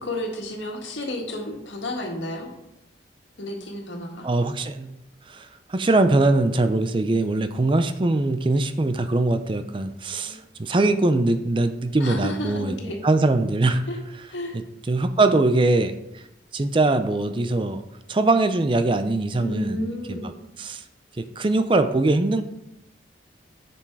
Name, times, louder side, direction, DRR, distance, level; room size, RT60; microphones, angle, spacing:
voice 1, 0.0-2.5 3.4-4.3 10.1-10.4 12.0-13.0 13.9-14.0 14.3-14.6 19.4-20.3, left 1 dB, 80° left, 1 dB, 1.8 m, -32 dB
voice 2, 4.2-4.9 5.3-12.7 13.0-13.8 14.9-15.9 16.5-17.8 18.1-19.8 20.1-20.3 20.6-20.8 21.2-22.4, right 2 dB, 25° right, 9 dB, 0.4 m, -22 dB
7.1 x 6.9 x 4.8 m, 0.85 s
head